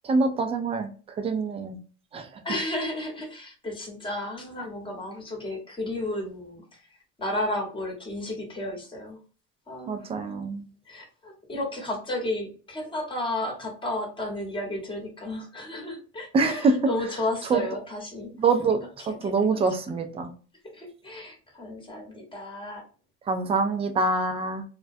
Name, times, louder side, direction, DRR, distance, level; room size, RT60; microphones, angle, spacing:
voice 1, 0.0-0.9 1.2-1.8 2.1-2.3 9.9-10.6 16.3-16.7 17.5-17.7 18.4-18.8 19.1-20.3 23.3-24.6, right 4 dB, 20° right, 7 dB, 0.3 m, -25 dB
voice 2, 2.4-6.6 7.2-9.2 9.7-10.0 10.9-18.3 18.7-18.9 20.7-22.8, left 1 dB, 15° left, 1 dB, 0.9 m, -33 dB
2.2 x 2.2 x 2.5 m, 0.37 s
supercardioid pair, 105°, 35 cm